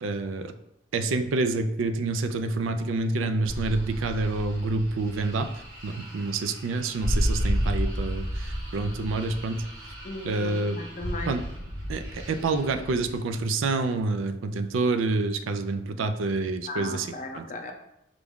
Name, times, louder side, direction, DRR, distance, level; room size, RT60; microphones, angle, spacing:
voice 1, 0.0-0.5 0.9-5.5 5.8-9.6 10.2-10.8 11.3-11.4 11.9-17.4, right 3 dB, 80° right, 8 dB, 0.4 m, -28 dB
sound 1, 3.4-13.2, equal, 55° right, 1.5 m, -32 dB
voice 2, 10.0-11.3 16.7-17.7, left 2 dB, 40° left, 4 dB, 0.5 m, -36 dB
5.0 x 2.3 x 3.5 m, 0.80 s
head